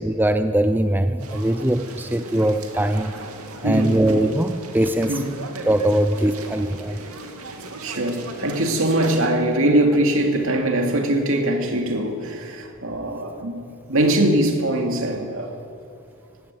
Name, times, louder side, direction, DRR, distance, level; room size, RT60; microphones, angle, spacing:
voice 1, 0.0-3.1 3.6-5.1 5.6-7.0, right 1 dB, 10° right, 0.5 m, -21 dB
sound 1, 1.2-9.3, right 2 dB, 85° right, 2.4 m, -37 dB
voice 2, 3.6-4.0 5.1-5.3 7.8-13.6 13.9-15.5, right 1 dB, 65° right, 2.6 m, -22 dB
18.5 x 16.5 x 9.3 m
head